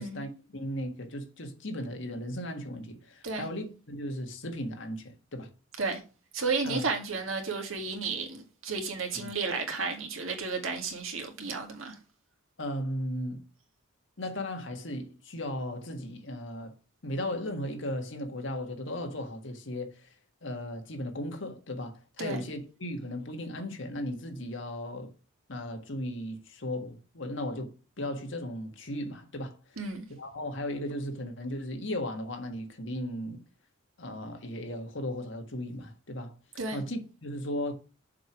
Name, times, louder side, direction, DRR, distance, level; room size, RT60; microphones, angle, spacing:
voice 1, 0.0-5.5 6.6-6.8 9.2-9.3 12.6-13.4 14.2-16.7 17.0-20.1 20.4-25.1 25.5-29.6 30.2-33.4 34.0-36.3 36.7-37.8, left 1 dB, 65° left, 1.6 m, -36 dB
voice 2, 6.3-12.0 22.2-22.4 29.8-30.1 36.6-36.8, right 4 dB, 80° right, 2.0 m, -32 dB
7.0 x 4.5 x 6.1 m
head